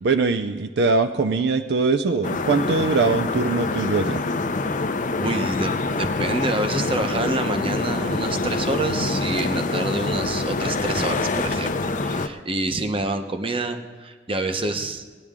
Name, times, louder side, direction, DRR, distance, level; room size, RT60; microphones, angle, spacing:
voice 1, 0.0-4.2, right 4 dB, 70° right, 9 dB, 0.5 m, -22 dB
sound 1, 2.2-12.3, left 3 dB, 45° left, 0.6 m, -25 dB
voice 2, 5.2-15.0, right 2 dB, 30° right, 6 dB, 0.9 m, -27 dB
18.5 x 10.5 x 3.7 m, 1.4 s
head